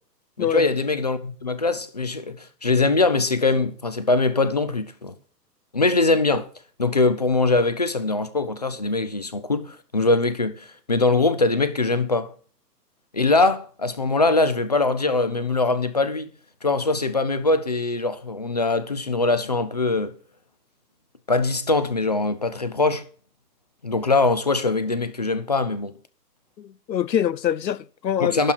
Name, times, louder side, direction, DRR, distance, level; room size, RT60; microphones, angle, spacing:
voice 1, 0.4-5.1 5.7-6.5 6.8-12.3 13.1-16.3 16.6-20.1 21.3-23.0 23.8-25.9 28.2-28.5, left 3 dB, 30° left, 0.4 m, -22 dB
voice 2, 26.6-28.4, left 10 dB, 85° left, 0.8 m, -24 dB
11.5 x 4.5 x 6.5 m
hypercardioid pair, 145°, 49 cm